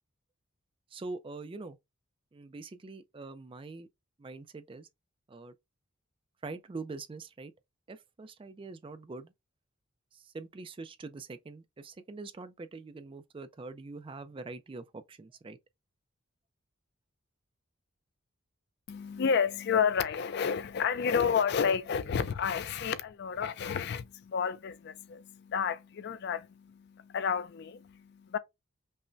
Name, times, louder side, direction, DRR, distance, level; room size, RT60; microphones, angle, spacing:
voice 1, 0.9-1.8 2.3-3.9 4.2-4.9 5.3-5.5 6.4-7.5 7.9-9.3 10.1-15.6, right 3 dB, 25° right, 0.3 m, -44 dB
voice 2, 18.9-28.4, left 6 dB, 55° left, 0.4 m, -31 dB
5.4 x 2.1 x 2.5 m
head